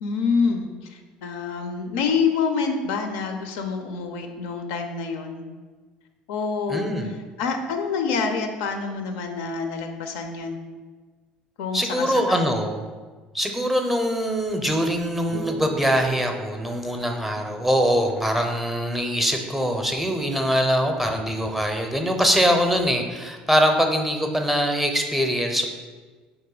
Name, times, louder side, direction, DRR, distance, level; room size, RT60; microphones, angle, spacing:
voice 1, 0.0-5.4 6.3-6.9 7.4-10.6 11.6-12.5, left 5 dB, 70° left, 5 dB, 0.4 m, -27 dB
voice 2, 6.7-7.1 11.7-12.8 13.3-25.6, equal, 5° right, 4 dB, 0.5 m, -23 dB
sound 1, 15.3-18.9, right 3 dB, 65° right, 0.4 m, -38 dB
3.7 x 2.6 x 3.8 m, 1.4 s
hypercardioid pair, 65°, 5 cm